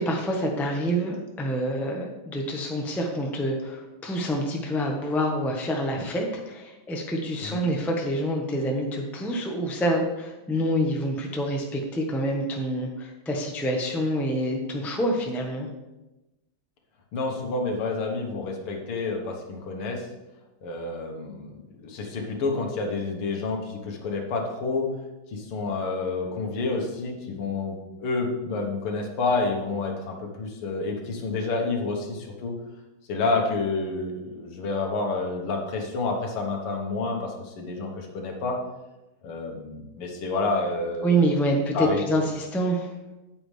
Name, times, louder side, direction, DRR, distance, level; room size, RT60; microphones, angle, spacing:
voice 1, 0.0-15.7 41.0-42.9, right 1 dB, ahead, 1 dB, 0.5 m, -27 dB
voice 2, 17.1-20.1 20.6-24.9 25.3-32.6 33.1-38.6 39.2-41.2 41.5-42.3, left 3 dB, 80° left, 2 dB, 2.2 m, -29 dB
8.9 x 8.7 x 3.3 m, 1.0 s
omnidirectional pair, 2.4 m